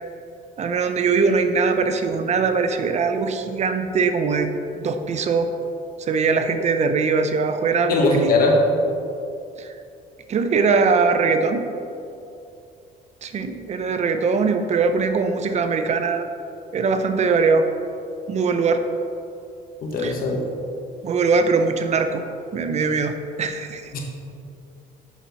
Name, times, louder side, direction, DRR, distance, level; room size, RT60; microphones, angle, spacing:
voice 1, 0.6-5.5 6.0-8.3 9.6-9.7 10.3-11.6 13.2-16.3 16.7-17.7 18.3-18.9 20.0-20.1 21.0-22.2 22.5-23.8, right 4 dB, 40° right, 8 dB, 0.6 m, -21 dB
voice 2, 7.9-8.6 19.8-20.4 23.9-24.0, left 2 dB, 60° left, 0 dB, 1.4 m, -20 dB
7.1 x 6.1 x 4.1 m, 2.7 s
cardioid pair, 110°, 17 cm